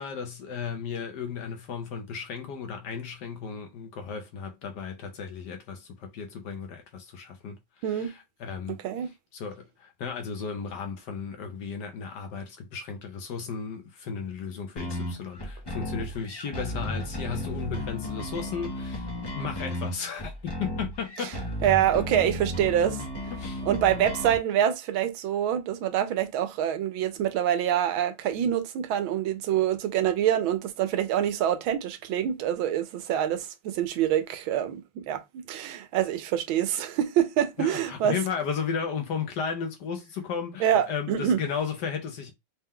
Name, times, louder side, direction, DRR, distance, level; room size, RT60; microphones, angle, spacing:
voice 1, 0.0-8.8 9.3-21.4 23.3-23.6 37.6-42.3, left 6 dB, 65° left, 1.3 m, -35 dB
voice 2, 7.8-8.1 8.7-9.1 21.2-21.3 21.6-23.0 23.6-35.2 35.5-38.2 40.6-41.4, right 10 dB, 85° right, 1.5 m, -26 dB
sound 1, 14.8-24.4, left 1 dB, 35° left, 0.4 m, -34 dB
4.3 x 2.3 x 3.6 m
omnidirectional pair, 2.2 m